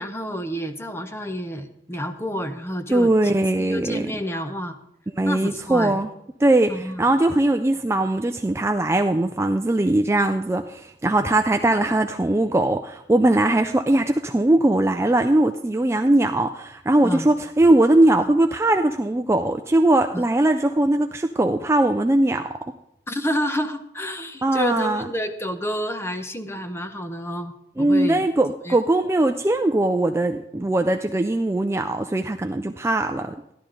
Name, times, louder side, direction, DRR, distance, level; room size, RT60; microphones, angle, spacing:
voice 1, 0.0-3.3 3.6-4.8 5.3-6.0 6.7-7.0 17.0-17.3 18.2-18.3 20.1-20.2 23.1-28.3 28.6-28.8, equal, 15° left, 8 dB, 0.7 m, -29 dB
voice 2, 2.9-4.1 5.2-6.1 6.4-22.5 24.4-25.1 27.8-33.4, right 1 dB, 15° right, 6 dB, 0.3 m, -20 dB
14.0 x 11.5 x 3.8 m, 0.80 s
head